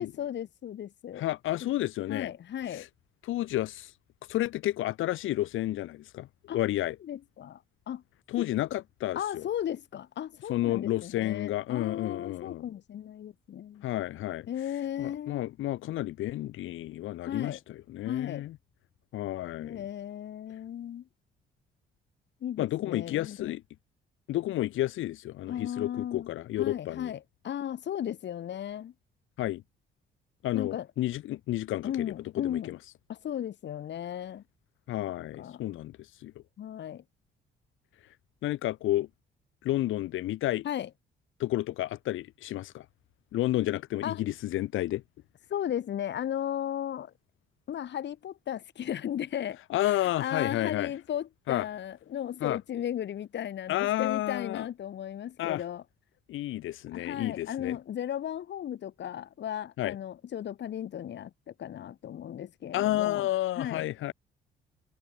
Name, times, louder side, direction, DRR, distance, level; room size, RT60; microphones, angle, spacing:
voice 1, 0.0-1.2 2.1-2.9 6.5-6.6 7.0-7.6 7.9-8.0 8.4-8.5 9.2-13.8 14.5-15.4 17.3-17.6 18.1-18.5 19.6-21.0 22.4-23.5 25.5-26.3 26.6-28.9 30.5-30.9 31.8-32.7 33.1-34.4 35.4-35.6 36.6-37.0 40.6-40.9 44.0-44.2 45.5-47.1 47.7-55.8 56.9-63.3 63.6-63.9, left 10 dB, 65° left, 2.2 m, -35 dB
voice 2, 1.2-2.3 2.7-2.9 3.2-3.9 4.3-6.3 6.5-7.0 8.3-9.5 10.5-12.6 13.8-14.5 15.0-18.6 19.1-19.8 22.6-23.6 24.3-27.1 29.4-29.6 30.4-32.8 34.9-35.9 36.2-36.3 38.4-39.1 39.6-40.7 41.4-42.9 43.3-45.0 49.7-50.9 51.5-51.7 52.4-52.6 53.7-54.7 55.4-55.6 56.3-57.8 59.8-60.0 62.7-64.1, left 15 dB, 85° left, 2.1 m, -31 dB
cardioid pair, 90°, 20 cm